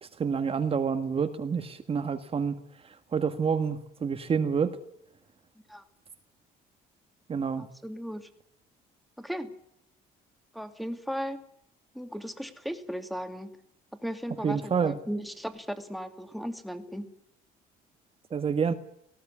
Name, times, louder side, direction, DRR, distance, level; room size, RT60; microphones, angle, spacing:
voice 1, 0.0-2.6 2.8-4.8 7.3-7.7 14.4-15.0 18.3-18.7, right 6 dB, 35° right, 7 dB, 1.7 m, -28 dB
voice 2, 7.6-8.3 9.2-9.5 10.5-11.4 11.9-13.5 13.9-17.1, equal, ahead, 8 dB, 2.5 m, -36 dB
19.0 x 16.5 x 9.7 m, 0.75 s
cardioid pair, 110°, 17 cm